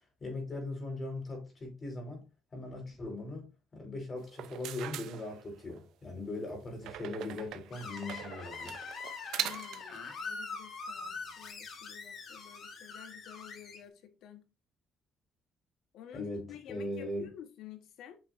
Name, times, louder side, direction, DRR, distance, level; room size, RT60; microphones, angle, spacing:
voice 1, 0.2-2.3 2.5-8.8 16.1-17.3, left 2 dB, 30° left, 4.5 m, -40 dB
sound 1, 4.2-5.8 6.8-10.0, right 11 dB, 85° right, 0.7 m, -41 dB
Screech, 7.7-13.8, left 4 dB, 55° left, 1.9 m, -43 dB
voice 2, 9.4-14.5 15.9-18.2, left 10 dB, 80° left, 1.4 m, -50 dB
8.5 x 6.0 x 2.6 m
cardioid pair, 130°, 0 cm